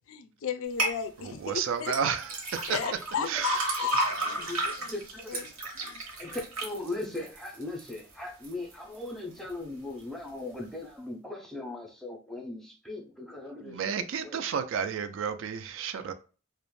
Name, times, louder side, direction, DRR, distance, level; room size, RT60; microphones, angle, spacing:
voice 1, 0.1-2.0 2.7-4.9 5.3-6.0, left 7 dB, 70° left, 0.3 m, -35 dB
sound 1, 0.8-1.0 1.9-8.0 8.4-9.0 9.4-9.5, right 2 dB, 80° right, 0.9 m, -32 dB
voice 2, 1.2-3.8 13.6-16.1, right 7 dB, 60° right, 0.3 m, -32 dB
voice 3, 4.3-5.5 6.2-14.4, left 2 dB, ahead, 0.5 m, -39 dB
2.4 x 2.0 x 3.1 m
head